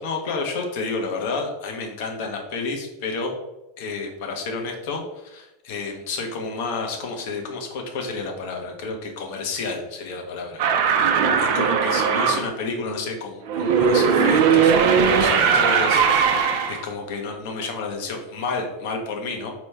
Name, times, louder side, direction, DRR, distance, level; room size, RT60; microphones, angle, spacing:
voice 1, 0.0-3.3 3.8-11.1 11.4-19.5, left 3 dB, 65° left, 2 dB, 0.9 m, -30 dB
sound 1, 10.6-12.5 13.5-16.8, right 6 dB, 65° right, 0.6 m, -19 dB
4.5 x 2.9 x 3.3 m, 0.99 s
hypercardioid pair, 100°, 0 cm